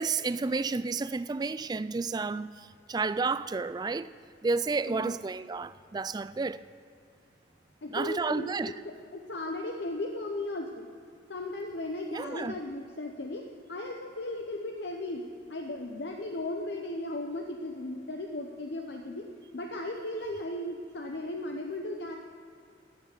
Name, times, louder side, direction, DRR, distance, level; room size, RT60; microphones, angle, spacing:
voice 1, 0.0-2.5 2.9-4.1 4.4-6.6 7.9-8.7 12.1-12.5, right 4 dB, 20° right, 0.3 m, -31 dB
voice 2, 7.8-10.9 11.3-15.2 15.5-19.3 19.5-22.1, left 1 dB, 65° left, 0.8 m, -36 dB
13.0 x 6.6 x 9.3 m
head